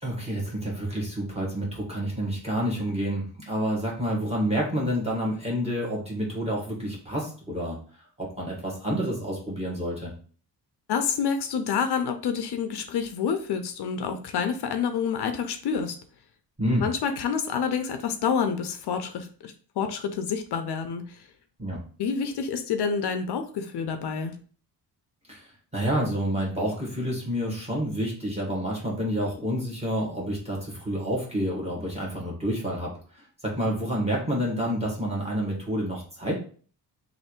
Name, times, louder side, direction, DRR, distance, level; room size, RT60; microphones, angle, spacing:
voice 1, 0.0-7.8 8.2-10.1 16.6-16.9 21.6-21.8 25.3-32.9 33.2-36.4, equal, 15° right, -4 dB, 1.4 m, -29 dB
voice 2, 10.9-16.0 16.8-21.3 22.0-24.4, left 6 dB, 70° left, 7 dB, 0.6 m, -28 dB
3.3 x 2.6 x 4.4 m, 0.42 s
wide cardioid pair, 165°, 42 cm